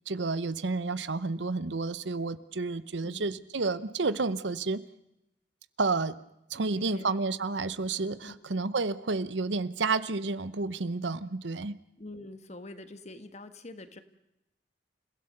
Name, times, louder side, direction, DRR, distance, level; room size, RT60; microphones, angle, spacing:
voice 1, 0.1-4.8 5.8-6.2 6.5-11.7, right 3 dB, 85° right, 15 dB, 0.9 m, -30 dB
voice 2, 3.0-3.5 6.5-7.1 8.2-8.5 12.0-14.0, left 2 dB, 40° left, 10 dB, 1.6 m, -45 dB
29.5 x 16.5 x 6.7 m, 0.89 s
head